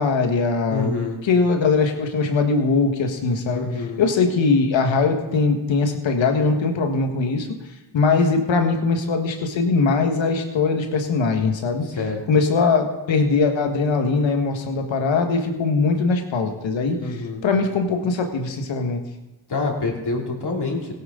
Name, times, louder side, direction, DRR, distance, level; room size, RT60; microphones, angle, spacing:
voice 1, 0.0-0.9 1.2-3.7 4.0-7.5 7.9-11.8 12.3-17.0 17.4-19.0, left 4 dB, 75° left, 5 dB, 1.8 m, -21 dB
voice 2, 0.7-1.2 3.5-4.1 11.8-12.2 17.0-17.4 19.5-20.9, left 3 dB, 55° left, -1 dB, 3.2 m, -26 dB
16.5 x 11.0 x 3.9 m, 1.1 s
supercardioid pair, 45°, 46 cm